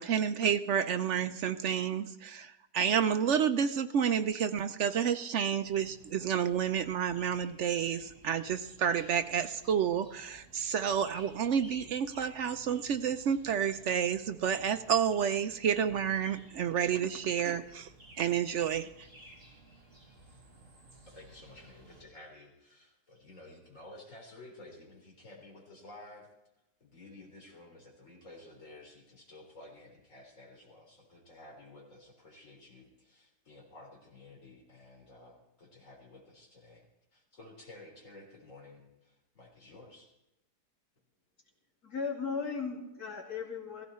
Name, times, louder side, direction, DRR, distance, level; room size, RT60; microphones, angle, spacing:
voice 1, 0.0-17.9 18.2-19.1, right 8 dB, 65° right, 10 dB, 0.7 m, -30 dB
sound 1, 5.6-22.0, right 1 dB, 30° right, 3.0 m, -55 dB
voice 2, 21.1-26.3 26.8-36.9 37.1-40.1, left 2 dB, 50° left, -1 dB, 4.0 m, -53 dB
voice 3, 41.8-43.8, left 5 dB, 65° left, -1 dB, 3.1 m, -36 dB
16.0 x 15.5 x 4.3 m, 0.93 s
omnidirectional pair, 1.7 m